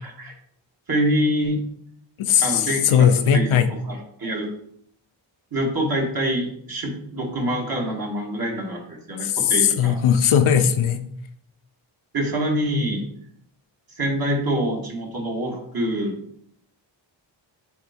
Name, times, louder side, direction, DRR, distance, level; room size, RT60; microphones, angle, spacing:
voice 1, 0.9-1.6 2.4-3.1 3.3-3.5 3.9-4.5 5.5-10.0 12.1-13.1 14.0-16.2, right 1 dB, 45° right, -1 dB, 2.4 m, -25 dB
voice 2, 2.2-3.7 9.2-11.1, left 8 dB, 85° left, 8 dB, 0.7 m, -18 dB
7.3 x 3.9 x 4.5 m, 0.68 s
cardioid pair, 70°, 47 cm